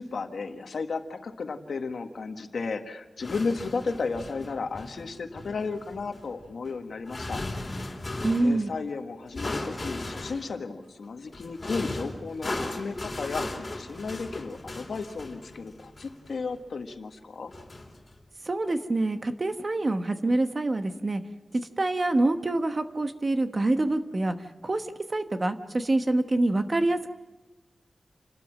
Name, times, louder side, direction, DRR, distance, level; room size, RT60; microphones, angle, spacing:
voice 1, 0.0-7.4 7.7-17.5, left 4 dB, 80° left, 6 dB, 1.6 m, -34 dB
sound 1, 3.2-8.6 9.4-10.5 11.3-16.5 17.5-18.2, left 2 dB, 30° left, 3.4 m, -37 dB
voice 2, 8.2-8.7 18.5-21.2 21.8-24.3 24.6-24.8 25.1-27.1, right 2 dB, 35° right, 8 dB, 1.1 m, -26 dB
29.0 x 12.5 x 7.5 m, 1.1 s
wide cardioid pair, 130°, 0 cm